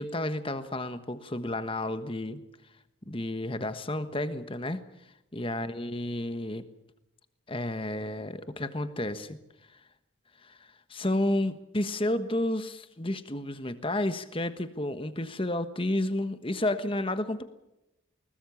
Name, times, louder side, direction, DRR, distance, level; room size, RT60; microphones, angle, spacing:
voice 1, 0.0-2.4 3.0-4.8 5.3-6.6 7.5-9.4 10.4-10.6 10.9-17.4, left 1 dB, 25° left, 10 dB, 1.3 m, -31 dB
21.5 x 20.0 x 7.2 m, 0.92 s
head